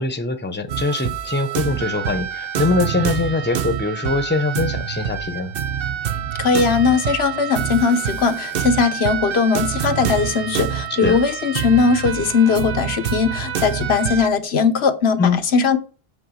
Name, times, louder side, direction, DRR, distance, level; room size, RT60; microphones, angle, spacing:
voice 1, 0.0-5.5 10.9-11.2 15.2-15.4, left 3 dB, 10° left, 0.7 m, -22 dB
sound 1, 0.7-14.3, right 9 dB, 70° right, 0.9 m, -26 dB
voice 2, 6.4-15.8, left 5 dB, 85° left, 1.2 m, -19 dB
7.8 x 3.9 x 6.2 m
omnidirectional pair, 1.0 m